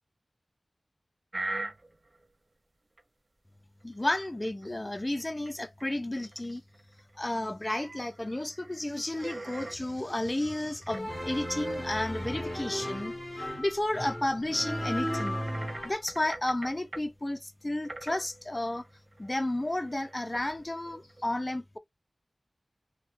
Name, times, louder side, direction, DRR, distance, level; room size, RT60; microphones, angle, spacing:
sound 1, 1.3-2.3 3.0-3.1 4.0-4.8 5.2-5.5 5.8-5.9 6.1-7.3 7.7-9.8 10.8-11.8 12.3-13.4 13.8-13.9 15.0-17.1 17.8-21.2, right 2 dB, 50° right, 0.4 m, -43 dB
voice 1, 3.8-6.6 7.2-13.1 13.6-15.4 15.8-18.9 19.2-21.8, left 1 dB, 25° left, 0.4 m, -32 dB
sound 2, 10.9-15.9, equal, 5° left, 1.4 m, -35 dB
3.1 x 2.1 x 2.5 m
wide cardioid pair, 60°, 0 cm